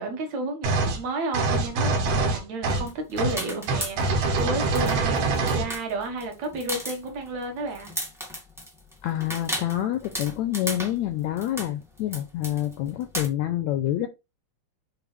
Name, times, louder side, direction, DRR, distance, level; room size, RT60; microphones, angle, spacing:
voice 1, 0.0-7.9, right 2 dB, 60° right, 2.7 m, -32 dB
sound 1, 0.6-1.0 1.3-2.9 3.2-3.4 3.7-5.7, right 3 dB, 80° right, 3.0 m, -24 dB
sound 2, 2.7-4.4 4.7-13.3, equal, ahead, 0.8 m, -35 dB
voice 2, 9.0-14.1, left 13 dB, 80° left, 1.7 m, -27 dB
7.0 x 4.7 x 3.3 m
omnidirectional pair, 3.8 m